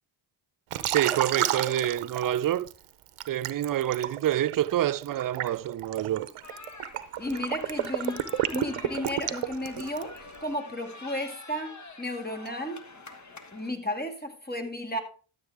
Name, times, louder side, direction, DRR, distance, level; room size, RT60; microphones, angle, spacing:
Liquid, 0.7-2.7 3.2-10.2, right 12 dB, 90° right, 0.7 m, -31 dB
voice 1, 0.9-2.7 3.3-6.3, right 12 dB, 45° right, 0.5 m, -27 dB
sound 1, 6.4-13.7, left 3 dB, 35° left, 1.5 m, -46 dB
voice 2, 7.2-8.2 8.5-10.1 10.4-12.9 13.5-15.0, left 1 dB, 20° left, 2.1 m, -33 dB
12.5 x 7.5 x 3.4 m
supercardioid pair, 40°, 49 cm